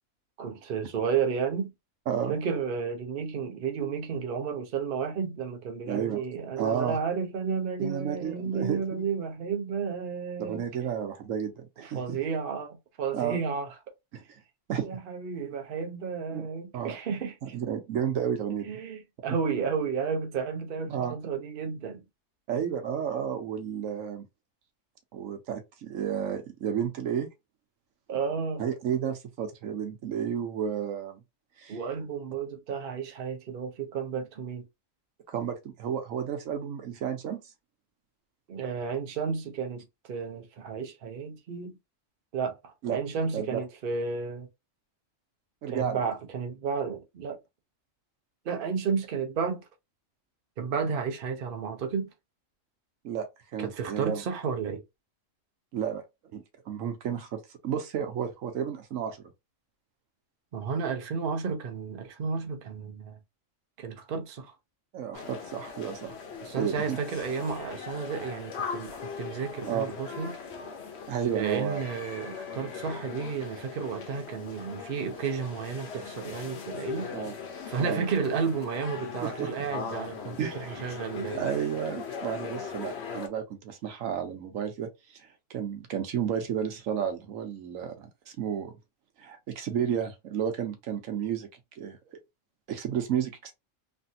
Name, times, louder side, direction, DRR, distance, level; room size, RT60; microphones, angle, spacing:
voice 1, 0.4-1.7 2.3-10.6 11.8-13.7 14.8-17.6 18.7-22.0 28.1-28.6 31.7-34.7 38.5-39.8 40.1-41.7 42.3-44.5 45.7-47.4 48.4-49.6 50.6-52.1 53.6-54.8 60.5-63.2 63.8-64.5 66.4-70.4 71.3-77.1 77.7-80.5 80.8-81.5, right 6 dB, 50° right, 0.8 m, -32 dB
voice 2, 5.9-6.2 6.6-7.0 7.8-9.1 10.4-12.2 13.1-13.4 14.1-14.2 14.7-14.9 16.3-16.4 16.7-17.0 17.4-18.8 20.9-21.1 22.5-24.3 25.1-27.3 28.6-31.2 31.6-31.8 35.3-37.4 42.8-43.0 43.3-43.6 45.6-46.0 53.0-54.2 55.7-56.0 56.3-59.2 64.9-66.2 66.6-67.0 69.6-69.9 71.1-71.9 77.1-77.3 77.8-78.0 79.2-79.5 80.4-81.0 81.4-88.7 89.2-91.5 91.8-92.0 92.7-93.5, right 8 dB, 85° right, 1.1 m, -32 dB
sound 1, 65.1-83.3, left 6 dB, 60° left, 1.0 m, -40 dB
3.2 x 2.5 x 2.7 m
omnidirectional pair, 1.3 m